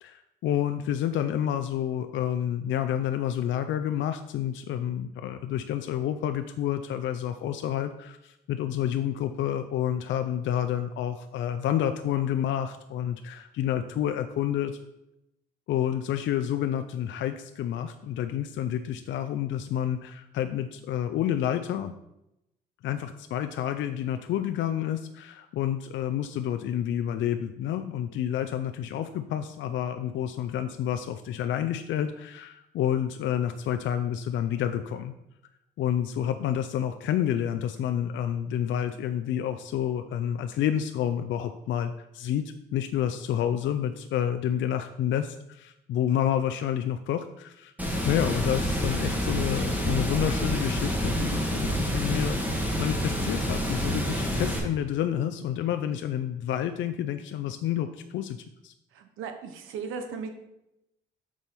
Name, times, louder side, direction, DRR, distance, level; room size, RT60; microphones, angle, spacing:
voice 1, 0.0-14.8 15.7-21.9 22.8-35.1 35.8-42.4 42.7-52.4 52.8-58.7, left 10 dB, 75° left, 8 dB, 0.4 m, -29 dB
Water, 47.8-54.6, equal, 10° right, 2.1 m, -28 dB
voice 2, 58.9-60.3, right 5 dB, 90° right, 6 dB, 1.0 m, -36 dB
6.2 x 4.2 x 5.3 m, 0.87 s
cardioid pair, 90°, 20 cm